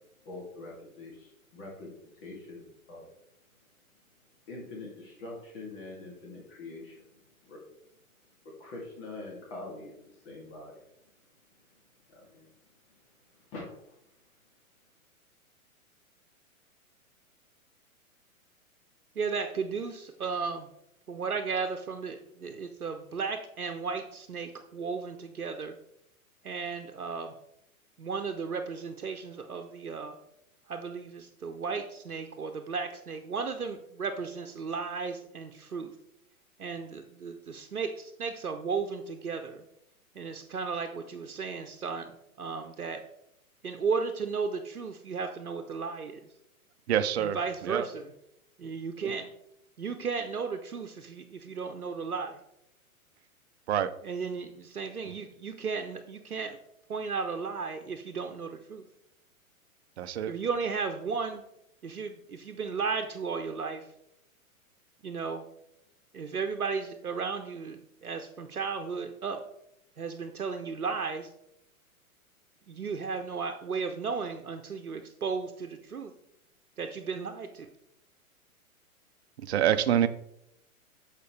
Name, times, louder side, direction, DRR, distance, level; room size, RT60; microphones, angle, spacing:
voice 1, 0.2-3.1 4.5-7.6 8.4-10.7 12.1-12.5 13.3-14.0, left 2 dB, 40° left, -2 dB, 2.6 m, -44 dB
voice 2, 19.2-20.7 21.1-25.8 26.4-27.3 28.0-30.1 30.7-35.9 36.6-39.6 40.1-42.1 42.4-43.0 43.6-46.2 47.2-48.0 48.6-49.3 49.8-52.4 54.0-56.6 56.9-58.9 60.3-61.4 61.8-63.9 65.0-65.4 66.1-69.4 70.0-71.3 72.7-76.1 76.8-77.7, right 5 dB, 80° right, 5 dB, 0.9 m, -34 dB
voice 3, 46.9-47.9 53.7-53.9 60.0-60.3 79.4-80.1, right 10 dB, 50° right, 12 dB, 0.7 m, -26 dB
13.0 x 5.0 x 3.3 m, 0.79 s
figure-of-eight pair, 110°, 43 cm